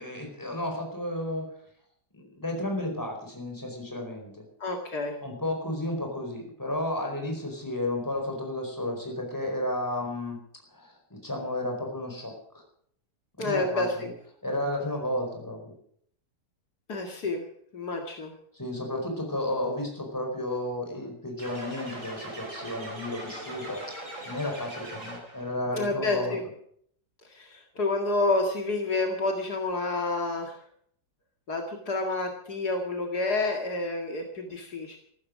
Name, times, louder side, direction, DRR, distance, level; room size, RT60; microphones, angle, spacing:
voice 1, 0.0-1.5 2.1-4.5 5.2-10.4 10.7-12.6 13.4-14.1 14.4-15.7 18.5-24.0 24.2-26.4, left 1 dB, 10° left, 2 dB, 4.6 m, -32 dB
voice 2, 4.6-5.2 13.4-13.9 16.9-17.4 17.7-18.3 25.7-26.4 27.2-30.6 31.5-35.0, left 2 dB, 75° left, 2 dB, 2.6 m, -29 dB
sound 1, 21.4-25.5, right 1 dB, 50° right, 6.0 m, -40 dB
14.5 x 14.0 x 6.3 m, 0.63 s
omnidirectional pair, 1.7 m